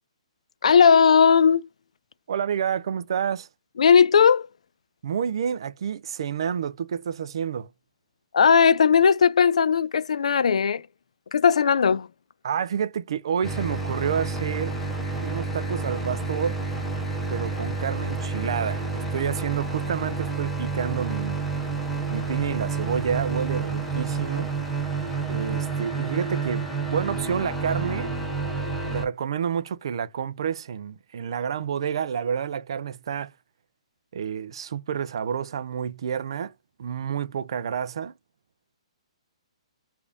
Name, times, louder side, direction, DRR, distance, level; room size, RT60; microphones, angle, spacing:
voice 1, 0.6-1.6 3.8-4.5 8.3-10.8 11.3-12.1, left 6 dB, 80° left, 0.4 m, -17 dB
voice 2, 2.3-3.5 5.0-7.7 12.4-14.8 15.2-16.6 17.3-21.4 22.1-24.5 25.3-28.1 28.9-33.3 34.1-36.5 36.8-38.1, right 7 dB, 50° right, 0.4 m, -29 dB
sound 1, 13.4-29.1, right 4 dB, 5° left, 0.6 m, -29 dB
3.5 x 2.5 x 3.5 m
hypercardioid pair, 170°, 3 cm